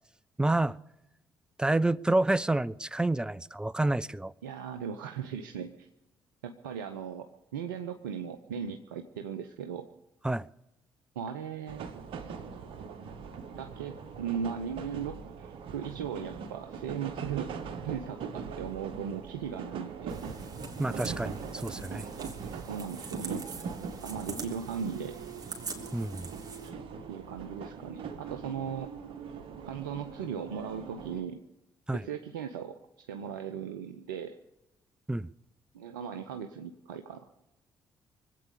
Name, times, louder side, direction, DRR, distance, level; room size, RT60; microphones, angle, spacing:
voice 1, 0.4-0.8 1.6-4.3 10.2-10.5 20.8-22.1 25.9-26.3 31.9-32.0 35.1-35.3, right 2 dB, 10° right, 0.5 m, -28 dB
voice 2, 4.4-5.9 6.4-9.9 11.2-12.1 13.6-17.5 17.8-20.2 22.7-23.5 24.0-25.2 27.1-29.0 29.6-31.4 31.9-34.4 35.7-37.3, right 7 dB, 75° right, 0.7 m, -38 dB
sound 1, 11.7-31.2, right 6 dB, 60° right, 1.3 m, -41 dB
sound 2, 20.1-26.7, right 4 dB, 35° right, 2.9 m, -44 dB
24.0 x 8.4 x 6.8 m
figure-of-eight pair, 45°, 11 cm